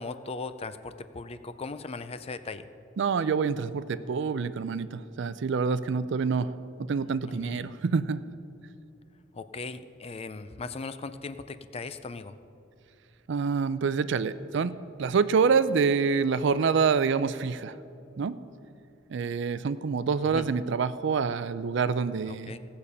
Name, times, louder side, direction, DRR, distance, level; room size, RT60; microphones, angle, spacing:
voice 1, 0.0-2.7 7.3-7.6 9.3-12.4 20.2-20.5 22.3-22.6, left 3 dB, 30° left, 11 dB, 0.4 m, -38 dB
voice 2, 3.0-6.5 6.9-8.2 13.3-17.8 18.2-18.4 19.1-22.5, right 5 dB, 65° right, 14 dB, 0.4 m, -26 dB
16.5 x 6.7 x 5.5 m, 2.8 s
head